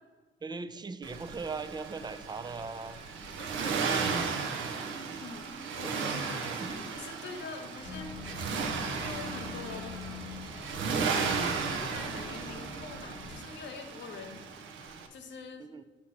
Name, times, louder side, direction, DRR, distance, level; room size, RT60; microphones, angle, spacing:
voice 1, 0.4-3.0 5.8-7.1 15.6-15.8, right 4 dB, 20° right, 12 dB, 0.3 m, -40 dB
Accelerating revving vroom, 1.0-15.1, right 5 dB, 80° right, 0.7 m, -35 dB
voice 2, 3.6-4.3 5.2-8.4 9.0-10.0 11.0-14.4 15.1-15.7, left 5 dB, 65° left, 5 dB, 0.9 m, -45 dB
sound 1, 7.8-13.4, left 4 dB, 40° left, 1.0 m, -44 dB
6.2 x 2.9 x 5.7 m, 1.3 s
cardioid pair, 90°, 20 cm